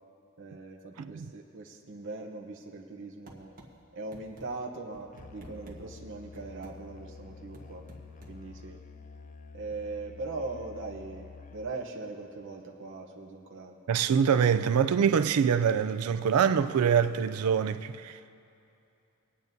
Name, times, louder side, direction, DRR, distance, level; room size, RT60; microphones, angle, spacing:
voice 1, 0.4-3.5 3.9-7.8 8.3-8.8 9.5-13.8, right 3 dB, 60° right, 0.8 m, -40 dB
sound 1, 3.3-3.7 4.1-4.5 4.9-5.8 6.3-6.8 7.5-8.4, right 1 dB, 40° right, 1.3 m, -50 dB
Musical instrument, 5.1-11.9, left 4 dB, 35° left, 0.4 m, -49 dB
voice 2, 13.9-18.2, right 7 dB, 80° right, 0.4 m, -25 dB
26.0 x 9.0 x 2.7 m
head